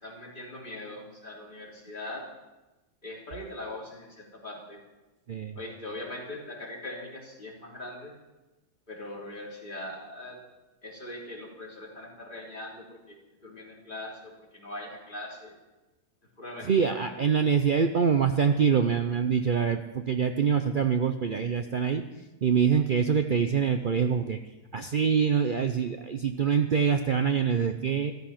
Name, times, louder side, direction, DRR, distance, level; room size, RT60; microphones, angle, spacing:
voice 1, 0.0-2.3 3.0-4.1 4.4-4.8 5.6-8.1 8.9-10.4 10.8-13.0 13.4-15.5 16.4-17.1, left 1 dB, 30° left, -3 dB, 3.4 m, -41 dB
voice 2, 16.6-22.0 22.4-24.4 24.7-28.1, right 6 dB, 90° right, 7 dB, 0.4 m, -25 dB
13.5 x 13.0 x 5.8 m, 1.1 s
omnidirectional pair, 1.7 m